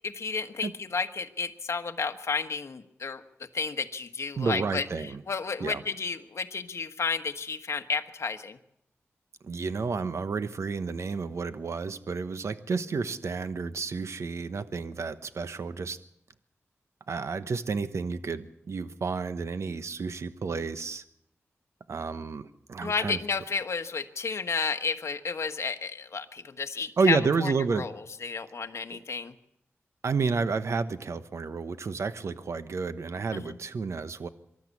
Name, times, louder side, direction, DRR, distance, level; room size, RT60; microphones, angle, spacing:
voice 1, 0.0-3.2 3.5-8.6 22.8-27.9 28.2-29.3 33.3-33.6, left 5 dB, 70° left, 7 dB, 1.3 m, -32 dB
voice 2, 4.4-5.2 5.6-5.8 9.4-16.0 17.1-21.0 21.9-23.2 27.0-27.9 28.9-29.0 30.0-34.3, right 4 dB, 70° right, 11 dB, 1.0 m, -30 dB
24.5 x 13.0 x 8.4 m, 0.78 s
wide cardioid pair, 70°, 5 cm